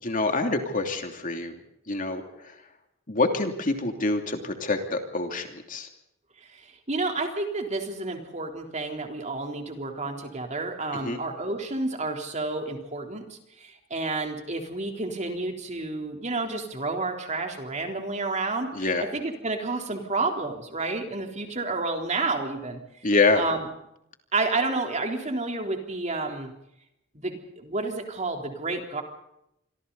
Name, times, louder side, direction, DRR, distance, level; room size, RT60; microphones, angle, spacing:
voice 1, 0.0-1.6 1.9-2.5 3.1-5.9 10.9-11.2 18.7-19.0 23.0-23.4, left 3 dB, 40° left, 4 dB, 2.9 m, -26 dB
voice 2, 6.6-22.8 23.4-23.6 24.3-26.5 27.1-29.0, right 3 dB, 35° right, 3 dB, 3.7 m, -30 dB
27.0 x 24.5 x 4.1 m, 0.78 s
head